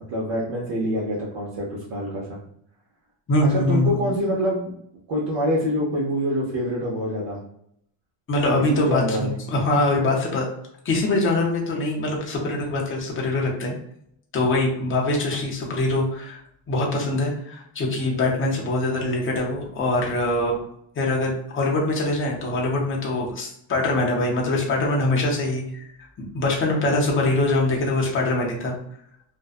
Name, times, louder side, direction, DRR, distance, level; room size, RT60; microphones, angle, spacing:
voice 1, 0.1-2.4 3.5-4.7 5.1-7.4 8.7-9.4, equal, 60° right, -5 dB, 0.8 m, -25 dB
voice 2, 3.3-3.9 8.3-10.4 10.8-13.8 14.3-16.4 16.7-20.6 21.0-25.8 26.2-28.7, left 2 dB, 25° left, -1 dB, 0.5 m, -23 dB
2.5 x 2.1 x 2.4 m, 0.71 s
cardioid pair, 145°, 50 cm